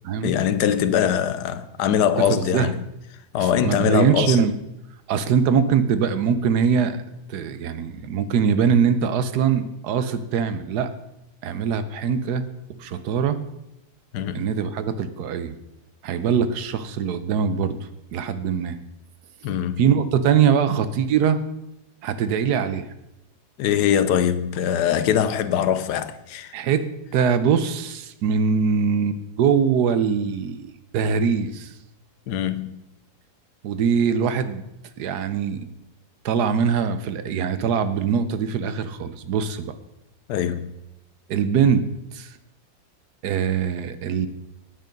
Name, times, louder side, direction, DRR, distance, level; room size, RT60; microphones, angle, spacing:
voice 1, 0.2-2.8 3.3-4.4 14.1-14.4 19.4-19.8 23.6-26.5 32.3-32.7 40.3-40.7, left 9 dB, 90° left, 1.3 m, -22 dB
voice 2, 2.3-2.7 3.4-4.5 5.1-7.0 7.3-10.9 11.4-12.4 12.8-13.4 14.3-15.5 16.0-17.8 18.1-18.8 19.8-21.4 22.0-22.9 26.5-26.8 27.1-31.7 33.6-34.6 35.0-35.7 36.2-39.7 41.3-41.8 42.1-42.3 43.2-44.3, right 7 dB, 80° right, 1.3 m, -22 dB
9.3 x 9.1 x 5.2 m
omnidirectional pair, 1.7 m